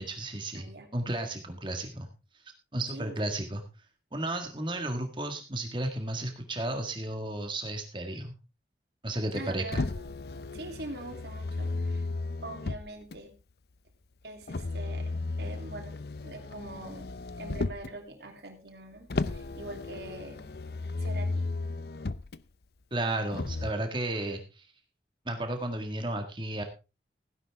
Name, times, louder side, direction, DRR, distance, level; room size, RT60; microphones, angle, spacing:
voice 1, 0.0-2.1 2.7-3.6 4.1-8.3 9.0-9.8 22.9-24.7 25.3-26.6, right 1 dB, 25° right, 5 dB, 1.7 m, -33 dB
voice 2, 0.5-0.9 2.9-3.1 9.3-10.1 10.5-12.1 12.4-13.3 14.2-15.1 15.4-17.1 17.4-20.5 21.0-21.5, right 2 dB, 70° right, 4 dB, 3.0 m, -43 dB
Motor vehicle (road), 9.7-13.2 14.5-18.0 19.1-22.4 23.3-23.7, left 3 dB, 65° left, 0.6 m, -34 dB
16.0 x 10.5 x 3.5 m, 0.30 s
head